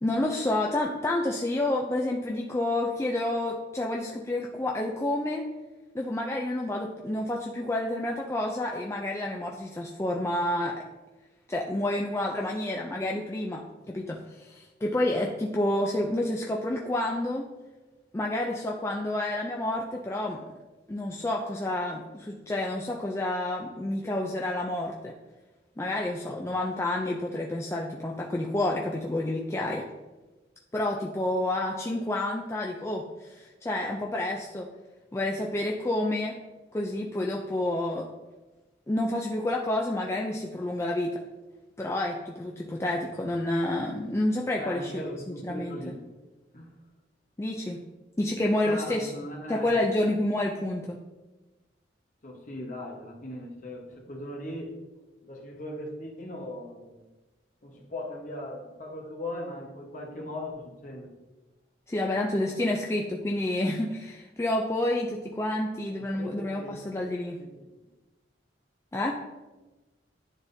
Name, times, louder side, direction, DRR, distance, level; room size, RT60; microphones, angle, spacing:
voice 1, 0.0-5.4 5.9-10.8 11.5-17.5 18.1-20.4 20.9-25.1 25.8-29.9 30.7-34.7 35.1-36.3 36.7-38.1 38.9-41.2 41.8-45.8 47.4-47.8 48.2-49.1 49.5-51.0 61.9-67.4 68.9-69.2, left 1 dB, 15° left, -1 dB, 0.4 m, -29 dB
voice 2, 44.6-46.1 46.5-46.7 48.5-50.1 52.2-54.8 55.2-57.0 57.6-61.1 62.7-62.8 66.0-66.8 67.4-67.5, left 1 dB, 45° left, -1 dB, 1.1 m, -39 dB
10.5 x 3.6 x 2.7 m, 1.1 s
head